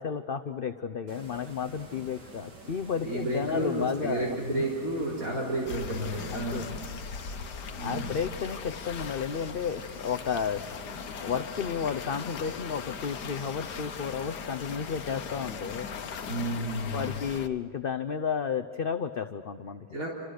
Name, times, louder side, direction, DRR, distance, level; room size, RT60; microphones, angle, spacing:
voice 1, 0.0-4.6 6.3-6.7 7.8-10.7 11.2-15.9 16.9-19.9, left 6 dB, 50° left, 8 dB, 0.7 m, -32 dB
sound 1, 1.1-17.4, right 2 dB, 80° right, 4.0 m, -49 dB
voice 2, 3.0-6.8 7.8-8.2 16.3-17.1 19.9-20.1, right 1 dB, 55° right, -2 dB, 4.1 m, -31 dB
sound 2, 5.7-17.5, left 7 dB, 75° left, 1.6 m, -40 dB
29.5 x 27.0 x 6.6 m, 2.4 s
omnidirectional pair, 1.8 m